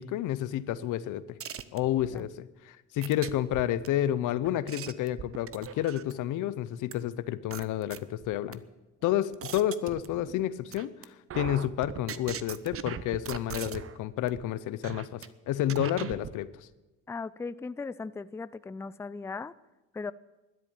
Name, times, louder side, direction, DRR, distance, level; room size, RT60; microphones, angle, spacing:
voice 1, 0.0-1.4 1.7-8.6 9.0-10.9 11.3-16.5, left 12 dB, 90° left, 15 dB, 0.8 m, -30 dB
sound 1, 1.4-2.2 3.0-3.9 4.4-6.2 6.9-7.0 7.5-8.5 9.0-10.4 10.7-11.0 11.3-14.0 14.3-14.4 14.8-15.3 15.7-16.3, right 9 dB, 45° right, 0.8 m, -39 dB
voice 2, 17.1-19.5 19.9-20.1, left 4 dB, 10° left, 16 dB, 0.4 m, -37 dB
12.5 x 10.5 x 8.8 m, 1.1 s
cardioid pair, 90°, 30 cm